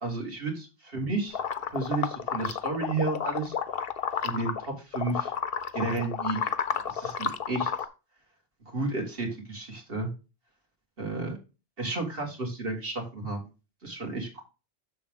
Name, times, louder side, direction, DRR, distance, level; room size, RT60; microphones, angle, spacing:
voice 1, 0.0-1.4 1.7-3.5 4.2-5.3 5.7-6.5 6.8-7.7 8.7-10.1 11.0-11.3 11.8-13.5 13.8-14.4, right 3 dB, 60° right, 0 dB, 2.2 m, -32 dB
sound 1, 1.3-4.7 4.9-7.9, left 7 dB, 65° left, 0.8 m, -31 dB
7.0 x 6.1 x 3.6 m, 0.31 s
omnidirectional pair, 1.1 m